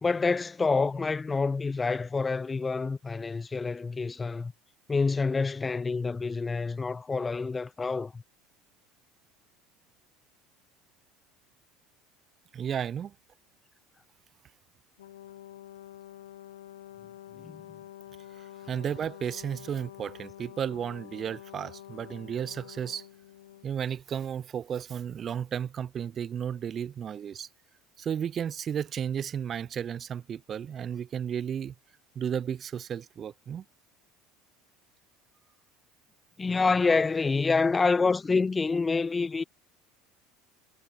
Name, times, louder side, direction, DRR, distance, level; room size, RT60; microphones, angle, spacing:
voice 1, 0.0-4.5 4.9-8.2 17.4-17.7 36.4-39.4, left 4 dB, 20° left, 0.8 m, -27 dB
voice 2, 12.5-13.1 18.4-23.1 23.6-27.5 28.0-31.7 32.1-33.6, right 8 dB, 35° right, 0.8 m, -33 dB
Brass instrument, 15.0-23.7, left 12 dB, 75° left, 2.2 m, -47 dB
figure-of-eight pair, 70°, 0 cm